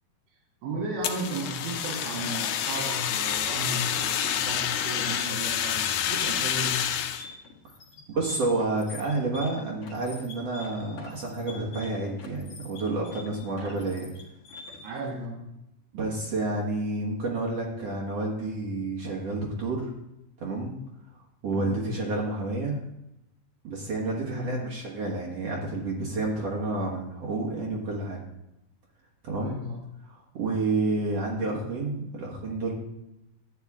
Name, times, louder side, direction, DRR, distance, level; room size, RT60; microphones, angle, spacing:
voice 1, 0.6-6.9 13.5-13.8 14.8-15.4 21.5-21.9 24.2-24.6 29.4-29.8, right 2 dB, 80° right, -3 dB, 3.3 m, -35 dB
Fire, 1.0-7.2, left 9 dB, 75° left, 2.4 m, -28 dB
sound 1, 5.3-15.1, left 3 dB, 50° left, 2.0 m, -45 dB
voice 2, 8.1-14.1 15.9-19.9 20.4-20.8 21.4-22.8 23.6-28.2 29.2-29.6 30.1-32.7, right 2 dB, 55° right, -3 dB, 2.0 m, -30 dB
12.0 x 9.0 x 3.6 m, 0.87 s
omnidirectional pair, 4.4 m